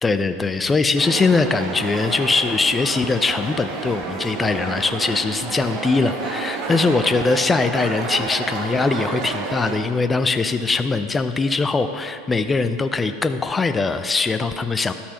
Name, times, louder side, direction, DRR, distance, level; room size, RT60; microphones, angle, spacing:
voice 1, 0.0-14.9, left 3 dB, 20° left, 9 dB, 0.5 m, -21 dB
sound 1, 1.0-9.8, right 4 dB, 50° right, 1.0 m, -30 dB
12.0 x 4.2 x 5.5 m, 2.4 s
hypercardioid pair, 85°, 0 cm